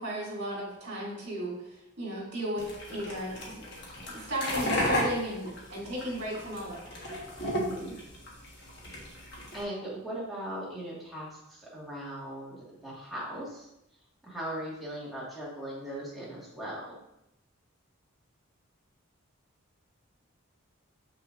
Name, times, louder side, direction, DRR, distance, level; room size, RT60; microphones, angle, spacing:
voice 1, 0.0-3.7 4.1-6.8 9.0-9.1 10.6-10.7, right 1 dB, 50° right, -4 dB, 2.3 m, -35 dB
sound 1, 2.6-9.6, left 1 dB, 50° left, 1.4 m, -33 dB
voice 2, 7.5-7.9 9.5-13.7 14.2-16.8, right 1 dB, ahead, -8 dB, 1.7 m, -39 dB
6.8 x 5.8 x 2.5 m, 0.86 s
head